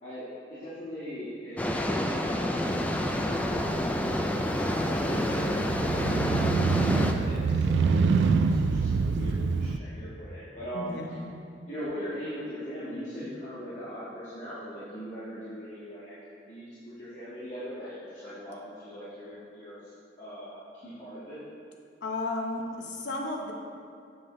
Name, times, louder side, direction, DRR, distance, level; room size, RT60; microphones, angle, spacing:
voice 1, 0.0-11.0 11.7-19.9 20.2-21.4, equal, 45° left, -12 dB, 1.5 m, -40 dB
sound 1, 1.6-7.1, left 1 dB, 10° left, 0.3 m, -28 dB
Motorcycle, 2.7-9.8, right 4 dB, 80° right, 0.3 m, -27 dB
voice 2, 10.7-11.4 22.0-23.5, left 2 dB, 80° left, 0 dB, 1.0 m, -34 dB
7.5 x 6.5 x 3.2 m, 2.3 s
head